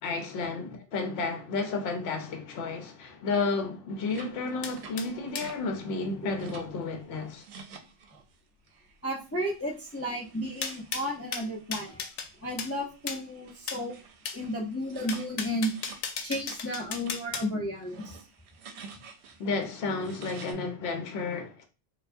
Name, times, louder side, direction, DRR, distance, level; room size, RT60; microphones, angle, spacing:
voice 1, 0.0-7.5 19.4-21.6, left 4 dB, 70° left, 0.9 m, -32 dB
sound 1, 4.1-5.6 5.9-6.8 7.2-8.4 8.7-9.0 9.4-16.6 16.9-17.2 17.7-20.5, right 5 dB, 70° right, 0.8 m, -50 dB
sound 2, 4.6-5.5 10.6-12.3 12.6-12.7 13.1-13.2 13.7-13.8 14.3-14.4 15.1-17.5, left 6 dB, 90° left, 0.9 m, -36 dB
voice 2, 9.0-12.0 12.4-14.0 14.3-15.7 16.2-18.2, equal, 20° left, 0.4 m, -33 dB
4.5 x 2.3 x 2.5 m
omnidirectional pair, 1.2 m